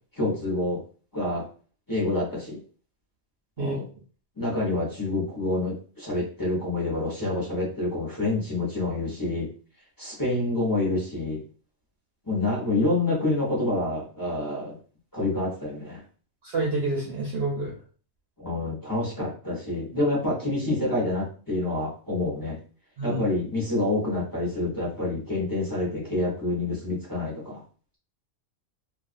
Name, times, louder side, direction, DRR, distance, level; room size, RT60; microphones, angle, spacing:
voice 1, 0.2-0.8 1.1-1.5 1.9-2.6 3.6-3.9 4.4-9.5 10.0-11.4 12.3-14.8 15.1-16.0 18.4-22.6 23.0-27.6, left 2 dB, 20° left, -5 dB, 0.6 m, -27 dB
voice 2, 16.4-17.7 23.0-23.2, right 2 dB, 60° right, -2 dB, 0.8 m, -28 dB
2.5 x 2.3 x 2.5 m, 0.40 s
omnidirectional pair, 1.4 m